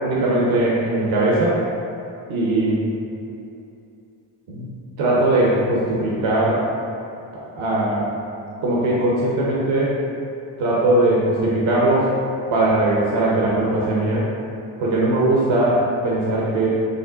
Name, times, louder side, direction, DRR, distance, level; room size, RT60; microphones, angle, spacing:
voice 1, 0.0-1.6 2.3-2.8 4.5-4.7 5.0-6.7 7.3-8.1 8.6-10.0 10.6-12.1 12.5-14.3 14.8-16.7, right 2 dB, 70° right, -5 dB, 0.8 m, -20 dB
6.2 x 2.2 x 2.4 m, 2.7 s
supercardioid pair, 50°, 49 cm